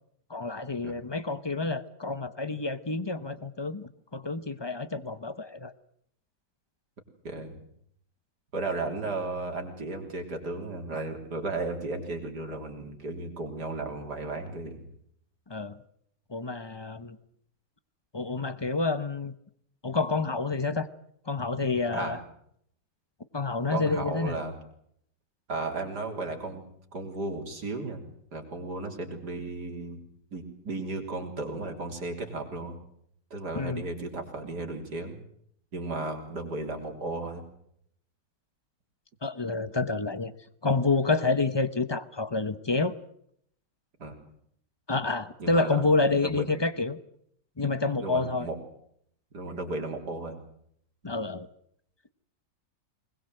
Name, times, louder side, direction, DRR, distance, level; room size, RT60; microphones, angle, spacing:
voice 1, 0.3-5.7 15.5-15.8 16.3-17.2 18.1-19.3 19.8-20.9 21.3-22.2 23.3-24.3 33.6-33.8 39.2-40.3 40.6-43.0 44.9-47.0 47.6-48.5 51.0-51.5, left 3 dB, 25° left, 13 dB, 0.5 m, -28 dB
voice 2, 7.2-7.6 8.5-14.8 21.9-22.2 23.7-24.6 25.5-26.6 26.9-28.0 28.3-30.0 30.3-32.8 33.3-35.2 35.7-37.4 44.0-44.2 45.4-45.8 46.2-46.4 48.0-48.5 49.3-50.5, right 2 dB, 60° right, 3 dB, 4.1 m, -34 dB
21.5 x 21.0 x 7.8 m, 0.70 s
omnidirectional pair, 2.0 m